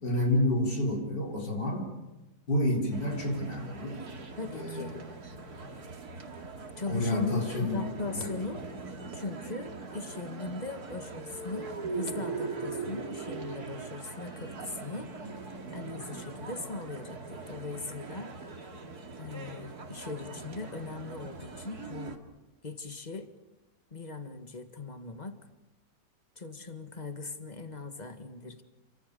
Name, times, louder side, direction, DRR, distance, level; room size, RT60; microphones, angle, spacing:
voice 1, 0.0-1.9 2.5-4.0 4.5-5.0 6.9-7.8 8.1-8.3, left 1 dB, 70° left, 0 dB, 4.9 m, -29 dB
sound 1, 2.9-22.2, right 3 dB, 60° right, 2.7 m, -41 dB
voice 2, 4.4-5.0 6.8-7.5 7.7-8.7 9.1-15.1 15.7-18.4 19.2-22.2 22.6-23.3 23.9-25.5 26.4-28.6, left 3 dB, 25° left, 7 dB, 1.9 m, -39 dB
28.5 x 25.0 x 6.9 m, 1.1 s
omnidirectional pair, 1.9 m